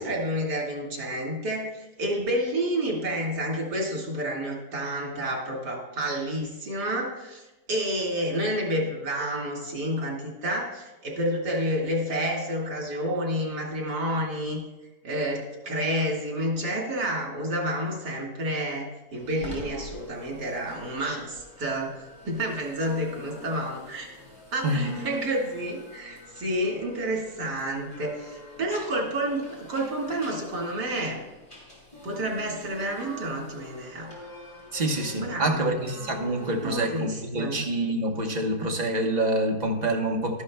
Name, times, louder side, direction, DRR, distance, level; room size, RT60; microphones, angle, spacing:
voice 1, 0.0-1.7 2.0-7.4 7.7-14.6 15.0-22.0 22.2-24.1 24.5-31.2 32.0-34.1 35.2-35.8 36.6-37.6, equal, 85° right, -1 dB, 2.4 m, -29 dB
sound 1, 19.1-36.8, equal, 20° left, 3.2 m, -44 dB
voice 2, 34.7-40.4, right 1 dB, 30° right, 2 dB, 0.9 m, -27 dB
12.5 x 11.0 x 2.2 m, 1.0 s
omnidirectional pair, 1.7 m